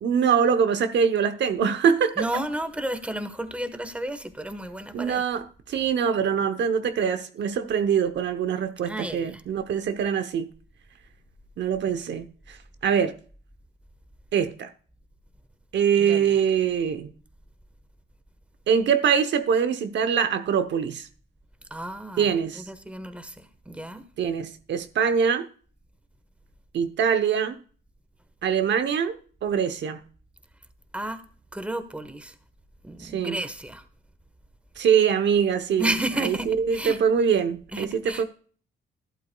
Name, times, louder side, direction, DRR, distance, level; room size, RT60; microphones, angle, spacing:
voice 1, 0.0-2.2 4.9-10.5 11.6-12.6 12.8-13.1 14.3-14.7 15.7-17.1 18.7-21.1 22.2-22.6 24.2-25.5 26.7-27.6 28.4-30.0 33.0-33.4 34.8-35.9 36.2-38.2, right 7 dB, 65° right, 0.9 m, -23 dB
voice 2, 2.2-5.2 8.9-9.4 16.0-16.3 21.7-24.0 30.9-31.2 31.5-32.3 32.8-33.8 35.8-37.0 37.7-38.2, right 1 dB, 5° right, 1.2 m, -32 dB
12.0 x 11.0 x 2.3 m
cardioid pair, 90°, 20 cm